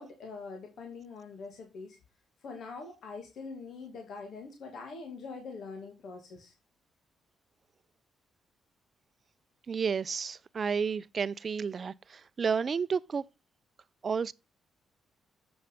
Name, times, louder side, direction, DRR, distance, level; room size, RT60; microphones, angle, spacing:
voice 1, 0.0-2.0 2.4-6.5, left 4 dB, 65° left, 2.2 m, -43 dB
voice 2, 9.7-13.2 14.0-14.3, right 6 dB, 45° right, 0.5 m, -31 dB
7.8 x 5.7 x 5.1 m
cardioid pair, 85°, 0 cm